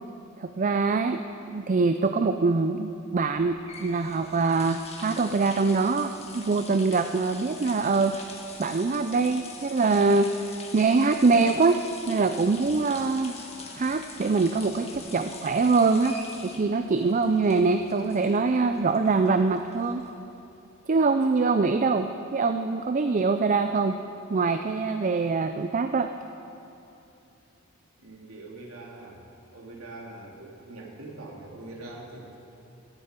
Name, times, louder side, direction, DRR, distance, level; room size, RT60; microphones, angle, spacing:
voice 1, 0.4-1.2 1.5-8.3 8.6-10.3 10.7-11.8 12.1-13.4 13.8-16.1 16.4-20.0 20.9-24.0 24.3-26.1, right 4 dB, 40° right, 8 dB, 0.4 m, -24 dB
sound 1, 3.3-20.4, left 4 dB, 30° left, 1.8 m, -44 dB
voice 2, 28.0-29.2 29.5-32.4, right 2 dB, 80° right, -1 dB, 2.9 m, -43 dB
16.5 x 14.5 x 5.2 m, 2.8 s
head